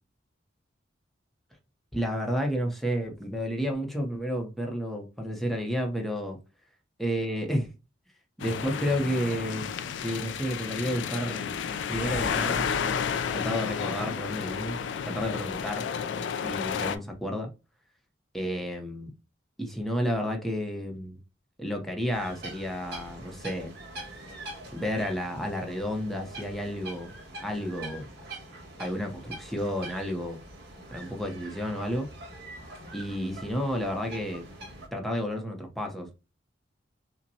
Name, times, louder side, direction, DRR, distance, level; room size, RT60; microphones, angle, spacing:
voice 1, 1.9-6.4 7.0-7.7 8.4-9.7 10.0-11.6 11.9-12.6 13.3-14.8 15.0-15.8 16.3-17.5 18.3-19.1 19.6-21.2 21.6-23.7 24.7-27.1 27.4-28.1 28.8-30.4 30.9-32.1 32.9-34.4 34.9-36.1, equal, ahead, 0.7 m, -31 dB
sound 1, 8.4-17.0, left 7 dB, 70° left, 0.4 m, -31 dB
sound 2, 22.1-34.9, right 1 dB, 60° right, 1.7 m, -44 dB
5.5 x 2.2 x 2.7 m
head